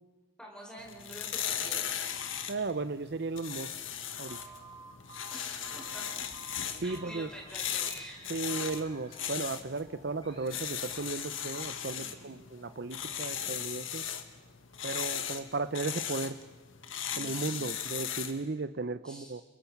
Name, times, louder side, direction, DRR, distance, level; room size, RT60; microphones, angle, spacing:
voice 1, 0.4-2.1 5.3-6.2 6.8-8.3 12.0-12.3 13.8-14.1 17.1-17.7 19.0-19.4, equal, 5° left, -1 dB, 4.4 m, -48 dB
sound 1, 0.8-18.4, left 9 dB, 80° left, 1.7 m, -38 dB
voice 2, 2.5-3.7 4.2-4.4 6.8-7.3 8.3-14.0 14.8-16.4 17.2-19.4, right 3 dB, 55° right, 13 dB, 0.7 m, -35 dB
sound 2, 2.8-13.5, left 1 dB, 25° left, 7.4 m, -58 dB
Telephone, 4.3-7.2 7.8-8.1 8.5-8.8, right 5 dB, 20° right, 1.5 m, -50 dB
30.0 x 21.5 x 5.9 m, 1.3 s
head